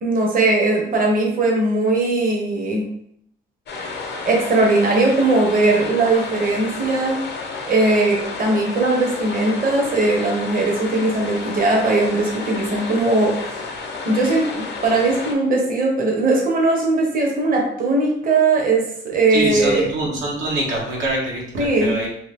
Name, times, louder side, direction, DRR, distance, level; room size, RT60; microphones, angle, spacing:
voice 1, 0.0-2.8 4.2-7.2 7.7-13.6 14.0-20.2 21.6-22.0, right 2 dB, 45° right, -1 dB, 0.9 m, -19 dB
sound 1, 3.7-15.3, left 4 dB, 60° left, 0.7 m, -31 dB
voice 2, 19.3-22.1, right 1 dB, 85° right, -3 dB, 1.0 m, -24 dB
2.8 x 2.6 x 3.3 m, 0.72 s
cardioid pair, 90°, 20 cm